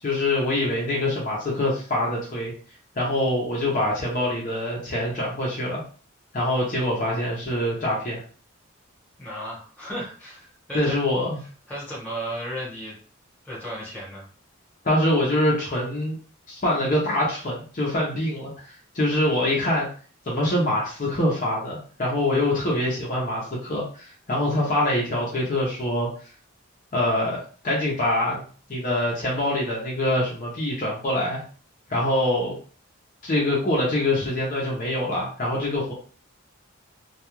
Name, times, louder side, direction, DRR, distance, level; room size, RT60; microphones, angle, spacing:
voice 1, 0.0-2.5 3.0-5.8 6.3-8.2 10.7-11.4 14.8-16.2 16.5-19.9 20.3-26.1 26.9-28.4 28.7-31.4 31.9-32.5 33.2-35.9, left 1 dB, 40° left, -4 dB, 0.6 m, -24 dB
voice 2, 9.2-10.9 11.7-12.9 13.4-14.3, equal, 5° left, -6 dB, 1.0 m, -34 dB
2.3 x 2.2 x 3.0 m, 0.41 s
head